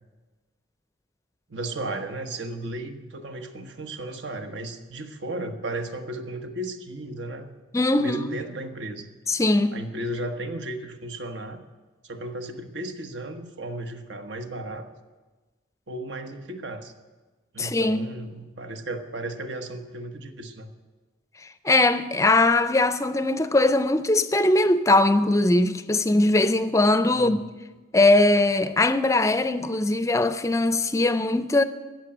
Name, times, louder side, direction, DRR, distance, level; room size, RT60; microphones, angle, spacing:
voice 1, 1.5-7.5 8.0-9.1 9.7-11.6 12.0-14.9 15.9-16.9 17.5-20.7 27.1-27.4, right 1 dB, 80° right, 1.2 m, -34 dB
voice 2, 7.7-8.3 9.3-9.8 17.6-18.1 21.4-27.4 27.9-31.6, left 2 dB, 15° left, 0.4 m, -21 dB
14.5 x 7.3 x 8.7 m
head